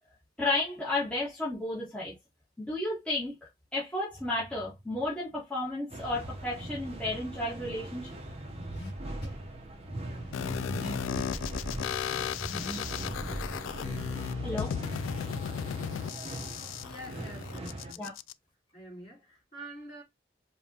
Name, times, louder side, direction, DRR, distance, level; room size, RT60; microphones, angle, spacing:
voice 1, 0.4-2.1 2.6-3.3 3.7-8.1 14.2-14.7 18.0-18.1, left 2 dB, 5° left, 1.4 m, -32 dB
sound 1, 5.9-17.9, right 2 dB, 35° right, 0.8 m, -42 dB
Car / Accelerating revving vroom, 6.0-15.2, equal, 55° left, 2.0 m, -42 dB
sound 2, 10.3-18.3, left 8 dB, 90° left, 0.3 m, -35 dB
voice 2, 16.8-18.0 18.7-20.0, right 1 dB, 35° left, 2.8 m, -46 dB
5.1 x 2.9 x 2.8 m
head